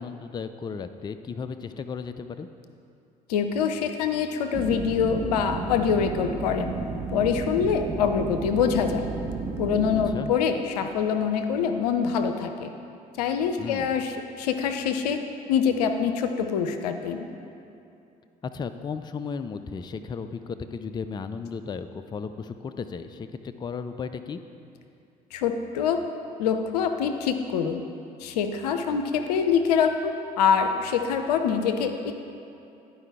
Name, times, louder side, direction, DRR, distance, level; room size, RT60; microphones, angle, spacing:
voice 1, 0.0-2.5 9.9-10.3 13.6-13.9 18.4-24.4, left 5 dB, 20° left, 10 dB, 0.4 m, -35 dB
voice 2, 3.3-6.7 7.1-9.1 9.6-12.7 13.2-15.2 15.5-17.2 25.3-26.0 26.4-27.8 28.2-32.1, left 7 dB, 80° left, 7 dB, 0.5 m, -25 dB
sound 1, 4.5-10.2, right 4 dB, 35° right, 0.9 m, -32 dB
11.5 x 4.7 x 3.4 m, 2.7 s
hypercardioid pair, 55°, 20 cm